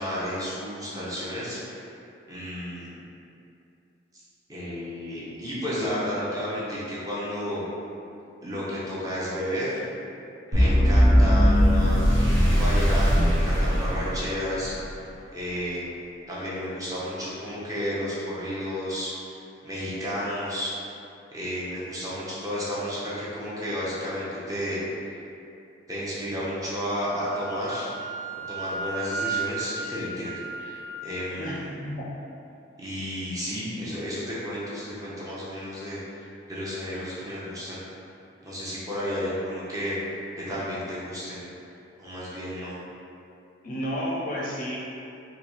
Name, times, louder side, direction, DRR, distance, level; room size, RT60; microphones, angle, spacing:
voice 1, 0.0-1.8 2.3-2.9 4.5-7.6 8.4-9.8 10.5-15.0 15.3-15.8 16.3-19.1 19.6-20.7 21.3-24.8 25.9-27.9 28.5-30.3 30.6-31.6 32.8-37.8 38.4-41.4 42.0-42.8, equal, 20° right, -9 dB, 0.6 m, -32 dB
sound 1, 10.5-14.7, equal, 60° right, 1.0 m, -20 dB
Wind instrument woodwind instrument, 26.8-31.0, right 4 dB, 80° right, 1.1 m, -34 dB
voice 2, 31.4-32.1 33.8-33.9 43.6-44.8, equal, 45° left, -5 dB, 0.5 m, -32 dB
3.8 x 2.3 x 3.0 m, 2.6 s
head